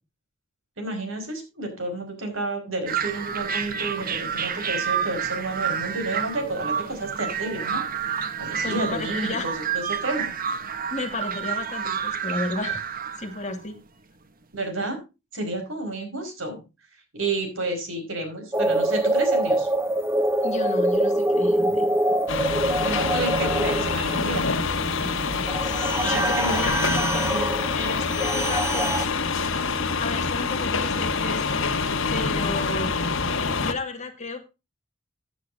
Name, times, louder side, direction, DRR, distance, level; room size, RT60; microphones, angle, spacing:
voice 1, 0.8-7.8 8.4-10.3 14.5-15.0 15.3-16.6 17.1-19.7 22.8-24.5 26.0-26.7, right 2 dB, 70° right, 6 dB, 4.9 m, -30 dB
sound 1, 2.9-13.6, right 7 dB, 45° right, 1.0 m, -29 dB
voice 2, 8.6-9.5 10.9-12.8 13.2-13.8 20.4-21.8 25.6-28.9 30.0-31.7 32.1-32.9 33.6-34.5, left 3 dB, 35° left, 5 dB, 2.1 m, -32 dB
sound 2, 18.5-29.1, right 1 dB, 10° right, 0.6 m, -25 dB
sound 3, 22.3-33.7, left 4 dB, 65° left, 1.5 m, -26 dB
15.5 x 9.2 x 2.6 m, 0.27 s
head